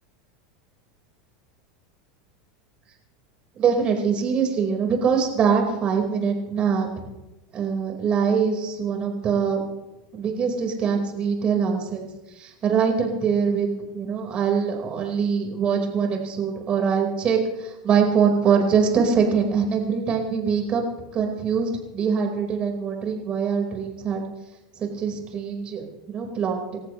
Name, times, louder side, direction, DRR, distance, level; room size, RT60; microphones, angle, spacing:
voice 1, 3.5-7.0 7.5-9.6 10.1-12.1 12.3-13.7 13.9-20.8 21.1-24.2 24.7-26.8, right 6 dB, 35° right, 2 dB, 4.8 m, -23 dB
29.5 x 14.5 x 3.3 m, 1.0 s
hypercardioid pair, 90°, 3 cm